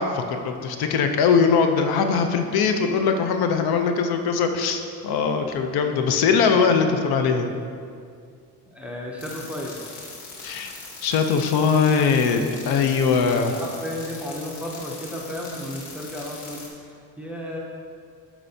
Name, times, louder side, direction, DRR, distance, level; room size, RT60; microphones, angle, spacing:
voice 1, 0.0-7.5 10.4-10.7 11.0-13.5, left 5 dB, 65° left, 5 dB, 0.6 m, -21 dB
voice 2, 8.7-9.8 13.5-17.6, left 1 dB, 5° right, -2 dB, 0.5 m, -34 dB
sound 1, 9.2-16.7, left 3 dB, 45° left, 1.2 m, -40 dB
12.0 x 4.4 x 2.7 m, 2.3 s
cardioid pair, 175°, 40 cm